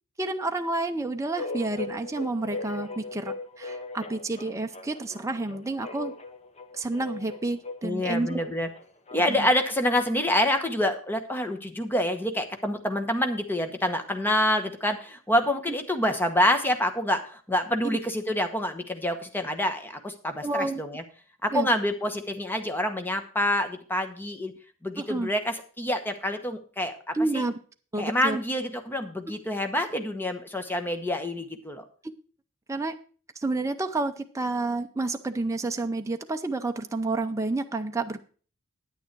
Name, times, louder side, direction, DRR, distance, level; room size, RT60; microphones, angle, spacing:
voice 1, 0.2-6.1 6.7-8.4 9.3-9.5 17.8-18.0 20.4-20.8 21.5-21.7 25.0-25.3 27.1-27.5 27.9-28.4 32.7-32.9 33.4-38.2, right 2 dB, 15° right, 5 dB, 0.5 m, -29 dB
sound 1, 1.4-9.6, left 3 dB, 30° left, 0.8 m, -39 dB
voice 2, 7.8-8.7 9.1-21.0 21.4-24.5 24.8-27.4 28.0-31.8, left 1 dB, 10° left, 7 dB, 1.0 m, -27 dB
9.5 x 9.2 x 4.6 m, 0.41 s
head